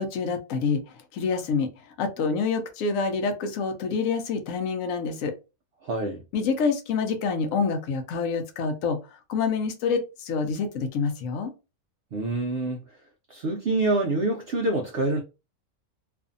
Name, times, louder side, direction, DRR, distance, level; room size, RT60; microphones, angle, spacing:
voice 1, 0.0-1.7 2.0-5.3 6.3-9.0 9.3-11.5, left 5 dB, 65° left, 1.0 m, -27 dB
voice 2, 5.8-6.2 12.1-12.8 13.3-15.2, right 2 dB, 75° right, 0.5 m, -26 dB
2.7 x 2.4 x 2.5 m
omnidirectional pair, 1.6 m